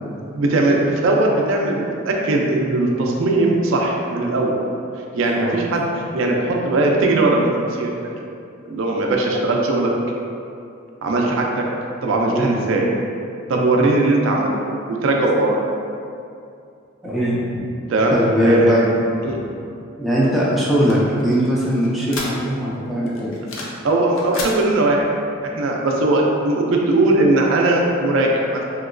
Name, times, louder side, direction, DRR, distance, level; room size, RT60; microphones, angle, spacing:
voice 1, 0.2-4.6 5.1-5.9 6.1-8.2 8.7-9.9 11.0-11.7 12.0-12.9 13.5-14.5 14.9-15.6 17.9-18.1 18.4-18.8 19.2-19.4 23.8-25.1 25.4-28.6, right 2 dB, 65° right, -1 dB, 0.4 m, -19 dB
voice 2, 17.0-17.6 18.1-19.0 20.0-23.4, equal, ahead, -7 dB, 0.4 m, -20 dB
sound 1, 20.2-22.7 23.1-23.8 24.1-24.6, left 2 dB, 75° left, 0.5 m, -33 dB
2.9 x 2.8 x 2.5 m, 2.5 s
head